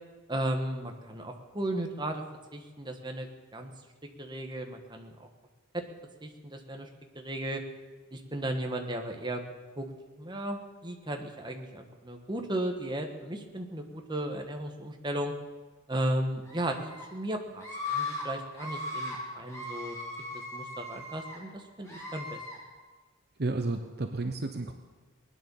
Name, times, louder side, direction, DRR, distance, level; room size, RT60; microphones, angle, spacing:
voice 1, 0.3-2.2 2.5-3.3 3.5-3.7 4.2-5.3 5.7-5.8 6.2-6.9 7.1-7.6 8.1-9.4 9.8-9.9 10.2-15.3 15.9-20.0 20.5-22.4, right 1 dB, 20° right, 4 dB, 1.4 m, -35 dB
Screaming, 16.5-17.0 17.6-18.2 18.5-19.2 19.5-21.4 21.8-22.6, left 3 dB, 15° left, 5.9 m, -38 dB
voice 2, 23.4-24.7, right 2 dB, 45° right, 6 dB, 0.8 m, -32 dB
20.0 x 10.0 x 7.0 m, 1.3 s
head